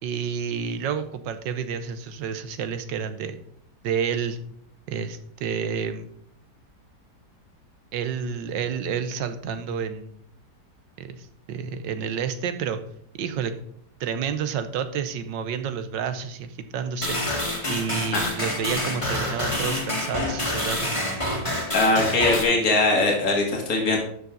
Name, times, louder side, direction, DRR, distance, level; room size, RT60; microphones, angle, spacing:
voice 1, 0.0-3.4 3.8-4.4 4.9-6.1 7.9-10.1 11.0-12.8 13.2-13.5 14.0-17.2 17.7-21.0, right 7 dB, 85° right, 10 dB, 1.6 m, -29 dB
sound 1, 17.0-22.4, left 1 dB, 15° left, 1.9 m, -27 dB
voice 2, 21.7-24.0, left 2 dB, 50° left, 0 dB, 2.5 m, -21 dB
12.0 x 7.0 x 4.0 m, 0.67 s
omnidirectional pair, 1.9 m